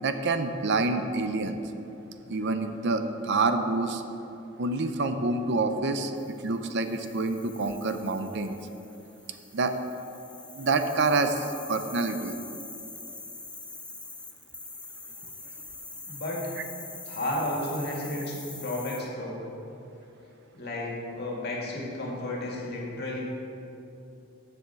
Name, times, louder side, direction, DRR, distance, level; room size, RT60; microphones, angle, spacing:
voice 1, 0.0-1.6 2.3-4.0 4.6-8.6 9.5-9.7 10.5-12.4, right 3 dB, 60° right, 8 dB, 0.6 m, -27 dB
sound 1, 6.1-19.0, left 3 dB, 5° left, 0.5 m, -44 dB
voice 2, 16.1-16.5 17.1-19.4 20.5-23.2, left 1 dB, 55° left, -3 dB, 2.1 m, -32 dB
7.8 x 7.0 x 6.9 m, 2.9 s
head